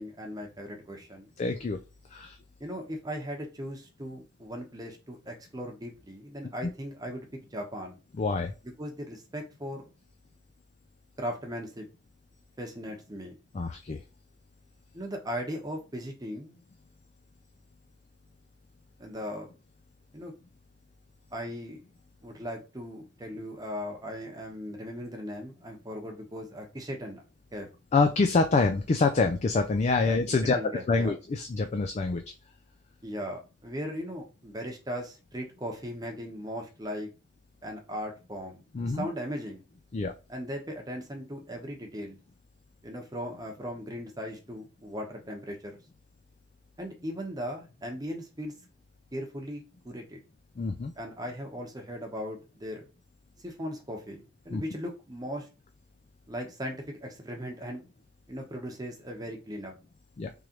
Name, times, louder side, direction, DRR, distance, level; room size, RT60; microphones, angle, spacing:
voice 1, 0.0-1.3 2.6-8.0 8.6-9.9 11.2-11.9 12.6-13.4 14.9-16.6 19.0-19.5 20.1-20.3 21.3-21.8 22.2-27.2 27.5-27.7 30.0-31.1 33.0-37.1 37.6-39.6 40.3-42.2 42.8-45.8 46.8-48.5 49.1-50.2 51.0-52.9 53.4-55.5 56.3-57.8 58.3-59.7, equal, 20° right, 2 dB, 0.9 m, -38 dB
voice 2, 1.4-1.8 2.1-2.3 8.2-8.5 13.5-14.0 27.9-30.6 30.9-32.2 38.7-39.1 39.9-40.1 50.6-50.9 54.5-54.6 60.2-60.3, left 3 dB, 35° left, 6 dB, 0.3 m, -26 dB
3.7 x 3.1 x 2.9 m, 0.30 s
head